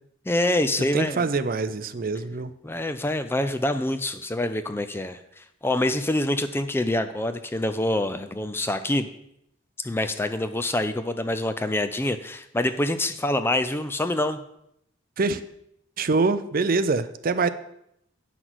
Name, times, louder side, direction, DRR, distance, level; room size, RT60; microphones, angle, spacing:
voice 1, 0.3-1.2 2.6-9.1 9.8-14.4, left 1 dB, 10° left, 10 dB, 0.4 m, -26 dB
voice 2, 0.9-2.5 15.2-15.4 16.0-17.5, right 3 dB, 45° right, 12 dB, 0.5 m, -24 dB
9.4 x 6.0 x 6.1 m, 0.77 s
head